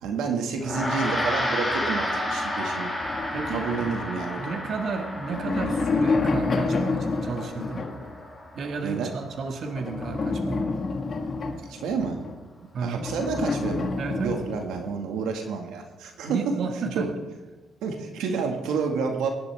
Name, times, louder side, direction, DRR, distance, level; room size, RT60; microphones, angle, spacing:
voice 1, 0.0-2.9 3.5-4.6 8.8-9.1 11.7-12.2 12.8-13.9 14.2-16.5 17.0-17.1 17.8-19.3, right 5 dB, 90° right, 3 dB, 2.0 m, -29 dB
Gong, 0.6-10.1, left 1 dB, ahead, 5.3 m, -32 dB
sound 1, 3.0-4.6 5.1-8.2 9.7-12.3 13.0-14.9, left 3 dB, 45° left, 1.8 m, -28 dB
voice 2, 3.3-3.9 4.4-7.8 8.5-10.6 12.6-13.1 14.0-14.4 16.2-17.1, right 4 dB, 60° right, 3 dB, 1.7 m, -32 dB
23.5 x 11.0 x 3.6 m, 1.2 s
cardioid pair, 90°, 0 cm